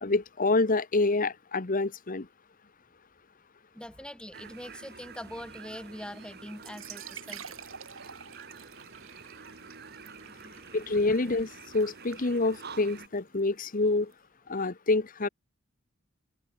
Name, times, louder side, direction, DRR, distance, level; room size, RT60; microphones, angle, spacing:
voice 1, 0.0-2.3 10.7-14.1 14.5-15.3, left 3 dB, 40° left, 1.0 m, -27 dB
voice 2, 3.7-7.6 9.7-10.7, equal, 5° left, 3.0 m, -44 dB
sound 1, 4.3-13.1, right 5 dB, 50° right, 2.4 m, -48 dB
sound 2, 6.5-14.1, right 8 dB, 70° right, 7.9 m, -49 dB
head